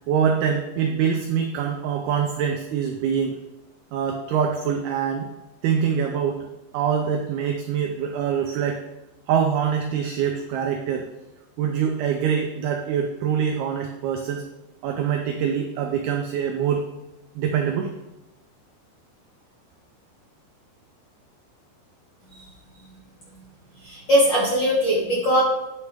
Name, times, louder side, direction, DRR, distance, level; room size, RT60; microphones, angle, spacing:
voice 1, 0.1-3.3 3.9-5.3 5.6-6.5 6.7-8.8 9.3-11.1 11.6-14.4 14.8-16.8 17.4-17.9, right 7 dB, 85° right, 3 dB, 2.2 m, -24 dB
voice 2, 23.8-25.4, equal, 30° left, -7 dB, 2.7 m, -20 dB
10.0 x 7.8 x 3.6 m, 0.97 s
omnidirectional pair, 5.3 m